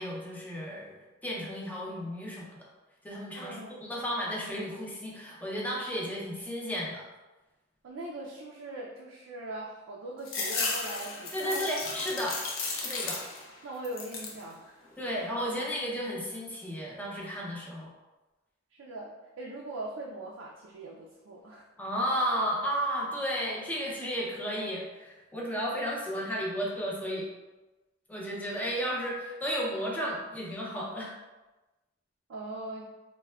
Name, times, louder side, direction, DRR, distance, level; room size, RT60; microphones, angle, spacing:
voice 1, 0.0-2.6 3.0-7.0 11.3-12.3 12.7-13.2 15.0-17.9 21.8-27.3 28.1-31.1, equal, 10° left, -4 dB, 0.5 m, -33 dB
voice 2, 3.4-3.9 7.8-11.6 13.6-14.9 18.7-21.6 32.3-32.9, right 1 dB, 85° right, -2 dB, 0.4 m, -41 dB
sound 1, 10.3-13.5 13.8-14.4 14.9-15.6, left 3 dB, 75° left, 0.5 m, -35 dB
3.3 x 2.1 x 2.3 m, 1.1 s
head